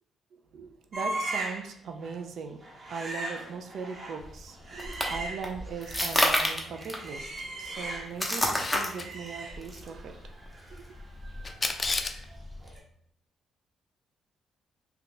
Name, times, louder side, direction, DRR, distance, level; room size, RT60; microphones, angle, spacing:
voice 1, 0.5-2.6 2.9-7.3 7.6-10.3, right 5 dB, 65° right, 5 dB, 0.3 m, -39 dB
sound 1, 0.9-1.7 2.0-2.2 2.6-6.3 6.6-8.3 8.6-12.4 12.6-12.8, right 2 dB, 35° right, 0.9 m, -39 dB
sound 2, 4.2-12.8, equal, ahead, 0.7 m, -32 dB
Camera, 8.4-9.1 11.4-12.2, left 3 dB, 30° left, 0.3 m, -31 dB
2.7 x 2.3 x 3.7 m, 0.68 s
cardioid pair, 90°, 0 cm